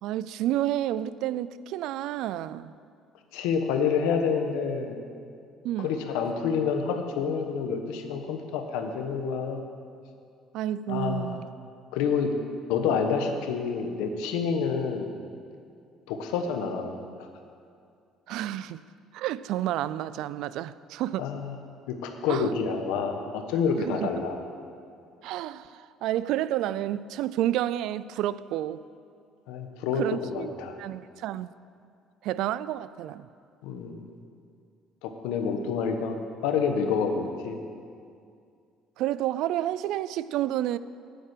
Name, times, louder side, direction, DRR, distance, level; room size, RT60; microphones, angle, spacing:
voice 1, 0.0-2.7 5.6-6.1 10.5-11.5 18.3-18.8 19.1-21.3 22.3-22.5 23.8-24.2 25.2-28.8 30.0-30.5 30.8-31.5 32.2-33.3 39.0-40.8, right 13 dB, 70° right, 0.3 m, -30 dB
voice 2, 3.3-5.0 5.8-9.6 10.9-11.3 11.9-12.4 12.7-15.1 16.1-17.0 21.2-21.6 21.9-24.4 29.5-30.8 33.6-34.0 35.0-36.2 36.4-37.6, left 6 dB, 90° left, 1.1 m, -28 dB
9.3 x 8.9 x 6.7 m
cardioid pair, 120°, 0 cm